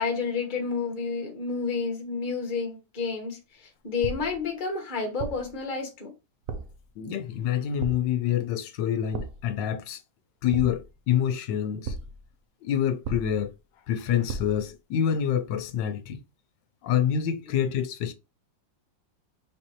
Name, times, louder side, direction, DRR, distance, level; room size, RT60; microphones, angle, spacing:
voice 1, 0.0-6.1, left 5 dB, 30° left, 1.1 m, -30 dB
sound 1, 4.0-4.5 5.2-5.6 6.5-6.9 7.8-8.2 9.1-9.6 10.5-11.1 11.8-12.3 13.0-13.6 14.3-14.7, right 4 dB, 70° right, 0.8 m, -36 dB
voice 2, 7.0-10.0 10.4-12.0 12.6-13.5 13.9-16.2 16.8-18.1, left 9 dB, 75° left, 1.3 m, -27 dB
4.2 x 3.9 x 2.9 m
omnidirectional pair, 2.0 m